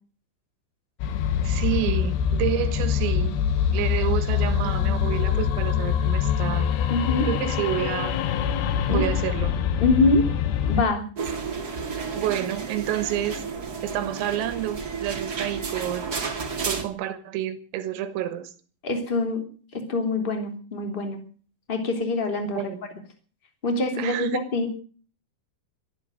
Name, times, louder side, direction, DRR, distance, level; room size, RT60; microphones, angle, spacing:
sound 1, 1.0-10.8, left 8 dB, 70° left, 2.9 m, -24 dB
voice 1, 1.4-3.4 3.7-6.7 7.3-8.2 8.9-9.6 11.4-11.6 12.2-13.4 13.8-16.1 16.6-18.5 22.6-22.8 24.0-24.4, right 12 dB, 80° right, 12 dB, 4.1 m, -29 dB
voice 2, 6.9-7.3 8.9-9.0 9.8-10.3 10.7-11.0 18.8-19.4 19.7-21.2 21.7-22.7 23.6-24.7, left 3 dB, 15° left, 4 dB, 1.8 m, -24 dB
sound 2, 11.2-16.8, right 5 dB, 60° right, 1.0 m, -32 dB
23.0 x 11.5 x 5.1 m, 0.41 s
omnidirectional pair, 6.0 m